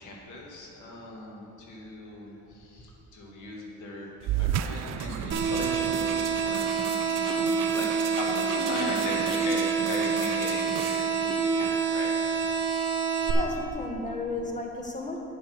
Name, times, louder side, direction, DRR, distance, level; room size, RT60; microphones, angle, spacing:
voice 1, 0.0-4.1 4.4-6.7 7.1-12.1, left 2 dB, 80° left, -2 dB, 2.1 m, -39 dB
sound 1, 4.2-9.1, right 11 dB, 65° right, 0.4 m, -34 dB
sound 2, 4.9-11.1 11.7-11.8, right 5 dB, 85° right, 1.0 m, -38 dB
sound 3, 5.3-13.3, right 6 dB, 40° right, 1.4 m, -27 dB
voice 2, 8.4-8.9 13.3-15.2, left 2 dB, 25° left, 1 dB, 1.6 m, -34 dB
8.6 x 7.5 x 6.1 m, 2.8 s
cardioid pair, 90°, 30 cm